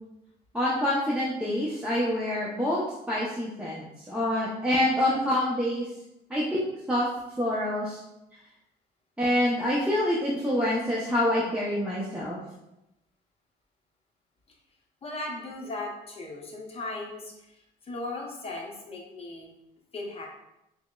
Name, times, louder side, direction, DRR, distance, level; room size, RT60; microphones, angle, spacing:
voice 1, 0.5-5.8 6.3-6.6 6.9-7.1 7.4-8.0 9.2-12.4, left 1 dB, 5° right, -7 dB, 0.6 m, -26 dB
voice 2, 15.0-19.5 19.9-20.3, left 2 dB, 35° left, 0 dB, 0.7 m, -37 dB
6.0 x 2.0 x 2.2 m, 0.89 s
cardioid pair, 110°, 17 cm